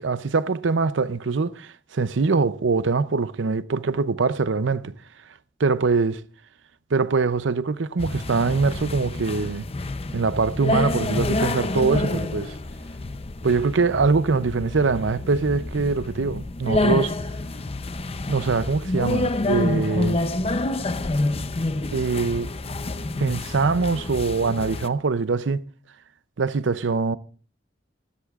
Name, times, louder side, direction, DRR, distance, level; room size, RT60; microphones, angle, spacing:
voice 1, 0.0-4.9 5.6-6.2 6.9-9.7 10.1-12.6 13.4-17.1 18.3-20.2 21.9-22.5 23.2-25.6 26.4-27.2, right 4 dB, 75° right, 0.6 m, -23 dB
sound 1, 8.0-24.9, left 2 dB, 35° left, 0.6 m, -28 dB
23.0 x 12.5 x 2.4 m
head